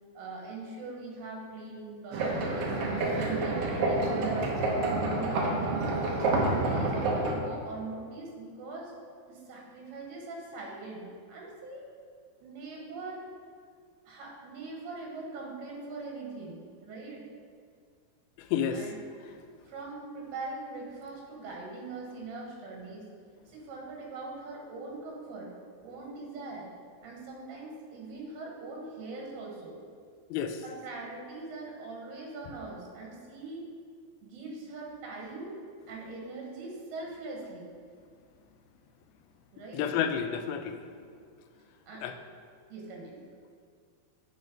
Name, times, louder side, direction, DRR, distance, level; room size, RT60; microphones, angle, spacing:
voice 1, 0.1-2.8 3.1-4.6 4.8-6.1 6.4-8.9 9.3-11.9 12.4-13.3 14.1-17.3 18.7-19.0 19.7-23.1 23.5-25.5 25.8-26.7 27.0-29.8 30.6-33.7 34.2-35.6 35.9-37.7 39.5-39.9 41.9-42.1 42.7-43.2, right 3 dB, 90° right, -1 dB, 3.3 m, -41 dB
sound 1, 2.1-7.3, right 2 dB, 70° right, 1.8 m, -28 dB
voice 2, 18.4-18.8 30.3-30.6 39.7-40.8 42.0-42.1, left 8 dB, 80° left, 7 dB, 2.3 m, -30 dB
9.6 x 4.0 x 5.2 m, 2.1 s
omnidirectional pair, 4.5 m